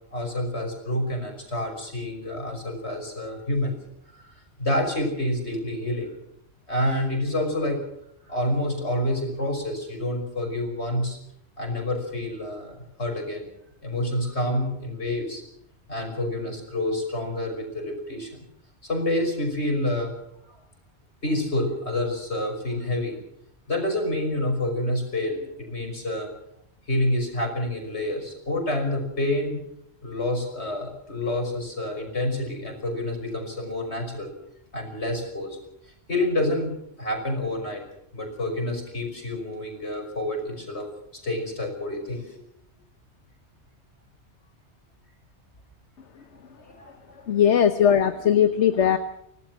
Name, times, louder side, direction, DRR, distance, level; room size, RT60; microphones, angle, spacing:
voice 1, 0.1-3.8 4.1-6.1 6.7-7.8 8.3-11.2 11.6-13.5 13.8-15.4 15.9-18.4 18.8-20.1 20.5-20.6 21.2-23.2 23.7-25.4 25.7-26.3 26.9-29.6 30.0-34.3 34.7-35.6 36.1-36.7 37.0-37.8 38.1-40.9 41.1-42.4 46.7-47.2, left 1 dB, 70° left, 3 dB, 6.1 m, -28 dB
voice 2, 47.2-49.0, left 9 dB, 90° left, 9 dB, 1.3 m, -20 dB
25.5 x 18.0 x 6.1 m, 0.78 s
omnidirectional pair, 1.2 m